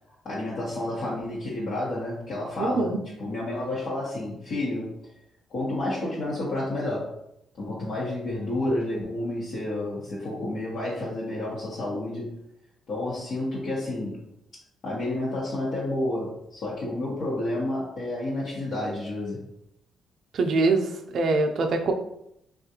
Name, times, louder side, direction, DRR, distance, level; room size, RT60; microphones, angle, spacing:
voice 1, 0.2-5.0 5.5-7.1 7.6-12.3 12.9-14.2 14.8-19.4, left 1 dB, 60° left, -7 dB, 1.0 m, -30 dB
voice 2, 2.6-3.0 20.3-21.9, right 3 dB, 60° right, 5 dB, 0.5 m, -24 dB
3.5 x 2.4 x 2.8 m, 0.78 s
cardioid pair, 90°, 0 cm